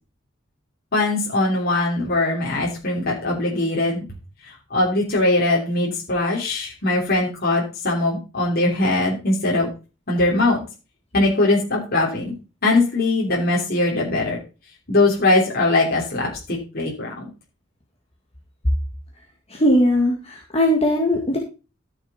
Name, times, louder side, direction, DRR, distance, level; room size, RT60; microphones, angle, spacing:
voice 1, 0.9-4.0 4.7-9.7 10.1-10.6 11.1-12.3 12.6-14.4 14.9-17.3, left 2 dB, 50° left, -3 dB, 3.4 m, -21 dB
voice 2, 19.5-21.4, equal, 30° left, 1 dB, 1.9 m, -19 dB
13.5 x 6.6 x 4.3 m, 0.32 s
head